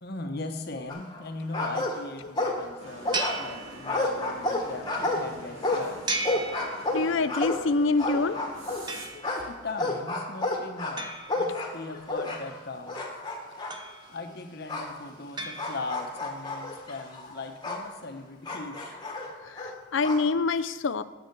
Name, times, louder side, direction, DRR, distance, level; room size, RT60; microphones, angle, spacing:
voice 1, 0.0-6.2 9.5-11.1 11.4-13.0 14.1-18.8, left 2 dB, 50° left, 5 dB, 1.0 m, -39 dB
sound 1, 0.9-1.3 1.5-2.8 3.0-8.9 9.2-12.6 12.9-13.8 14.7-14.9 15.6-17.9 18.5-20.2, left 2 dB, 20° left, 1.3 m, -31 dB
sound 2, 2.8-9.1, right 1 dB, 80° right, 2.1 m, -45 dB
sound 3, 3.1-4.3 6.1-7.3 8.9-9.6 11.0-12.1 13.7-14.4 15.4-16.3, right 3 dB, 20° right, 0.7 m, -36 dB
voice 2, 6.9-8.4 11.5-11.6 19.5-21.0, left 3 dB, 65° left, 14 dB, 0.5 m, -26 dB
9.5 x 8.4 x 4.7 m, 1.3 s
head